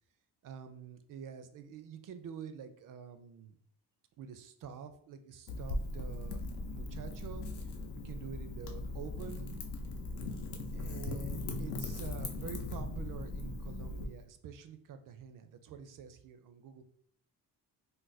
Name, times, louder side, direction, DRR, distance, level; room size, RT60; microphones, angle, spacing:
voice 1, 0.4-3.6 4.2-7.7 8.0-9.6 10.7-16.8, right 7 dB, 50° right, 9 dB, 0.5 m, -47 dB
Wind / Fire, 5.5-14.0, left 2 dB, 70° left, 0.7 m, -39 dB
2.5 x 2.1 x 4.0 m, 0.63 s
cardioid pair, 75°, 41 cm